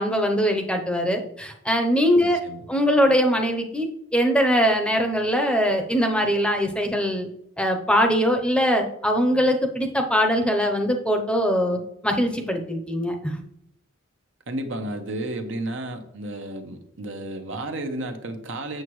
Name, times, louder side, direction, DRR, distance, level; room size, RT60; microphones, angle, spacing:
voice 1, 0.0-2.4 2.7-7.3 7.6-13.4, equal, 5° left, 4 dB, 0.7 m, -22 dB
voice 2, 2.2-2.6 14.5-18.8, right 1 dB, 65° right, 6 dB, 0.9 m, -32 dB
7.8 x 7.0 x 3.1 m, 0.73 s
head